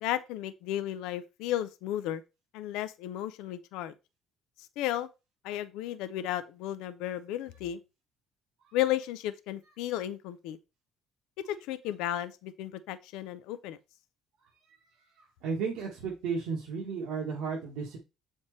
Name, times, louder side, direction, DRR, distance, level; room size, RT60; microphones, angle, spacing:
voice 1, 0.0-2.2 2.5-3.9 4.8-5.1 5.4-7.8 8.7-10.6 11.5-13.8, left 12 dB, 85° left, 0.4 m, -33 dB
voice 2, 15.4-18.0, right 5 dB, 85° right, 1.3 m, -33 dB
7.4 x 4.3 x 3.1 m
cardioid pair, 95°, 0 cm